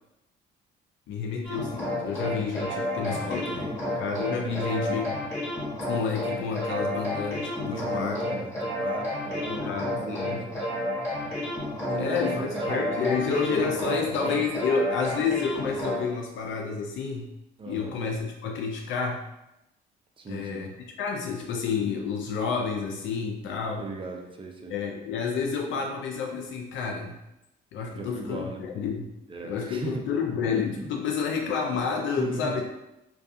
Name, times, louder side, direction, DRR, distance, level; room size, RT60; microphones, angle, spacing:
voice 1, 1.1-3.5 4.0-5.2 5.9-8.2 9.5-10.4 11.9-17.3 17.6-19.2 20.3-20.7 21.0-23.9 24.7-27.2 27.7-29.1 29.4-32.6, left 5 dB, 75° left, 1 dB, 0.4 m, -29 dB
sound 1, 1.4-16.0, left 1 dB, 15° left, 1.3 m, -31 dB
voice 2, 3.0-4.0 4.4-4.8 7.7-11.0 11.8-14.2 17.6-17.9 20.2-20.7 23.8-24.7 27.9-28.6 29.3-30.0 30.7-31.0 32.2-32.6, right 3 dB, 25° right, 2 dB, 0.4 m, -37 dB
2.3 x 2.3 x 2.6 m, 0.91 s
cardioid pair, 90°, 20 cm